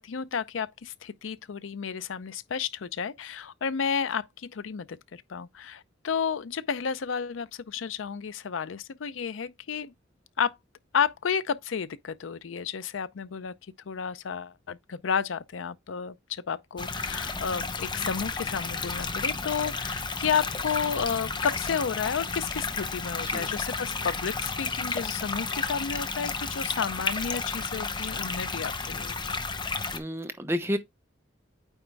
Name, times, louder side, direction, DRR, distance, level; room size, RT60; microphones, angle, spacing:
voice 1, 0.0-9.9 10.4-10.6 10.9-13.5 13.9-29.4, left 6 dB, 80° left, 0.5 m, -32 dB
sound 1, 16.8-30.0, left 4 dB, 25° left, 0.8 m, -32 dB
voice 2, 29.9-30.8, equal, 15° right, 0.8 m, -30 dB
9.0 x 3.4 x 3.4 m
head